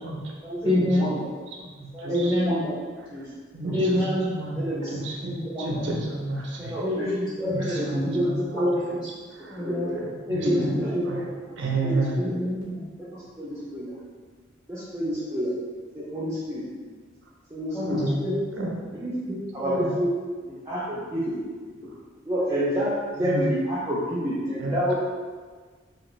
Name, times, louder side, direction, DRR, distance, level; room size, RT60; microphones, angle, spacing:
voice 1, 0.6-1.1 2.1-2.6 3.7-4.4 5.2-5.5 6.8-9.1 9.5-9.9 10.3-11.2 12.1-12.8 17.7-18.3 19.3-19.7, left 1 dB, 20° left, -10 dB, 1.0 m, -26 dB
voice 2, 3.5-4.0 4.3-5.3 5.6-6.7 7.5-8.6 10.3-10.7 11.1-11.2 11.6-12.2 17.9-18.3 18.5-18.7 19.7-20.0 23.2-23.5 24.6-24.9, right 2 dB, 70° right, -1 dB, 0.5 m, -30 dB
voice 3, 4.6-4.9 5.5-5.8 6.6-7.1 7.6-8.3 9.6-10.0 10.4-10.9 11.8-12.4 13.1-13.9 14.7-15.5 15.9-16.6 17.5-18.0 18.9-19.1 19.5-20.1 20.5-21.4 22.2-24.9, equal, 15° right, -10 dB, 0.4 m, -29 dB
2.8 x 2.5 x 3.0 m, 1.5 s
head